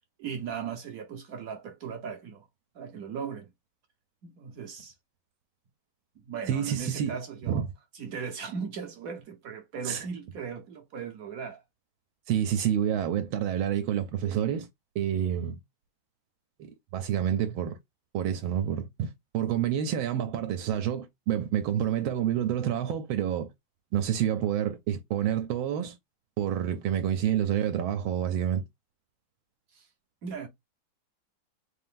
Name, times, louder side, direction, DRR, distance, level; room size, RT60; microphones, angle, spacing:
voice 1, 0.2-2.5 2.7-3.5 4.2-4.9 6.3-7.7 7.9-11.6 29.7-29.9 30.2-30.5, right 6 dB, 65° right, 0.9 m, -38 dB
voice 2, 6.5-7.1 7.5-7.7 9.8-10.1 12.3-14.7 14.9-15.6 16.6-17.8 18.1-23.5 23.9-26.0 26.4-28.6, right 10 dB, 80° right, 1.4 m, -28 dB
4.1 x 2.5 x 3.6 m
omnidirectional pair, 2.2 m